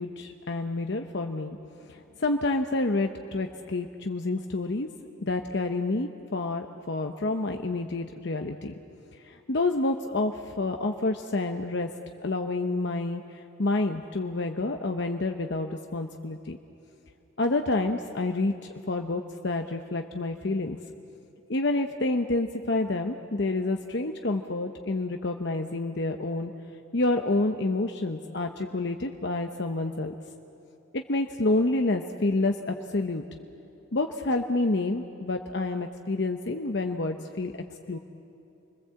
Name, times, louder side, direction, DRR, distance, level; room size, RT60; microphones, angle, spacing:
voice 1, 0.0-1.6 1.9-4.9 5.2-8.7 9.2-11.9 12.2-16.6 17.4-20.8 21.5-26.5 26.9-30.1 30.9-33.2 33.9-37.5 37.9-38.0, left 2 dB, 55° left, 5 dB, 0.9 m, -28 dB
28.0 x 21.0 x 7.7 m, 2.9 s
head